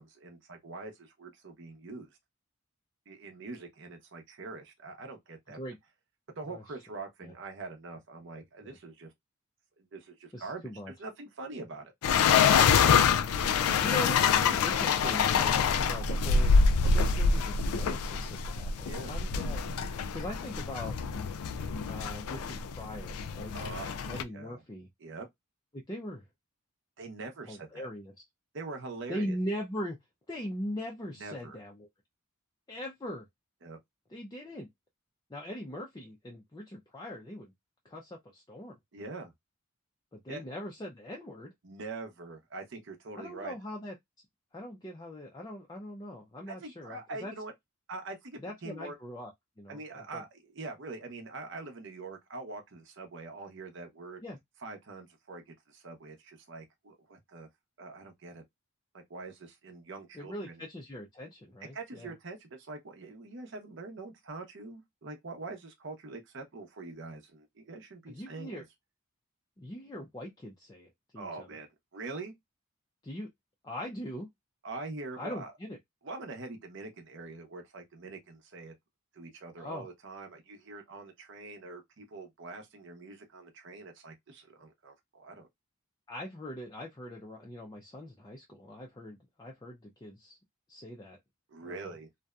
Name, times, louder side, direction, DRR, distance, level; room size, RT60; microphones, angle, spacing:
voice 1, 0.0-2.1 3.1-5.6 6.4-9.1 9.8-11.9 18.9-19.2 23.5-24.6 25.0-25.3 27.0-27.9 28.5-29.4 31.1-31.6 33.6-33.8 38.9-39.3 40.3-40.4 41.6-43.5 46.5-47.5 47.9-49.0 49.7-54.2 54.6-57.5 57.8-58.4 58.9-60.6 61.7-68.6 71.2-72.3 74.6-75.5 76.0-78.7 79.1-85.5 91.5-92.1, right 3 dB, 55° right, 0.6 m, -44 dB
voice 2, 8.4-8.8 10.3-10.9 13.8-19.6 20.1-21.0 21.8-24.9 25.7-26.3 27.5-28.1 29.1-30.0 30.3-31.9 32.7-33.3 34.1-34.7 35.3-37.5 37.8-38.8 40.1-41.5 43.2-43.9 44.5-47.3 48.4-49.3 49.6-50.2 54.2-54.4 60.1-62.1 68.1-68.6 69.6-71.5 73.0-73.3 73.6-74.3 75.2-75.8 79.6-79.9 86.1-90.4 90.7-91.2 91.6-91.9, left 1 dB, 20° left, 0.4 m, -41 dB
sound 1, 12.0-24.2, left 6 dB, 90° left, 0.3 m, -26 dB
2.6 x 2.1 x 2.3 m
head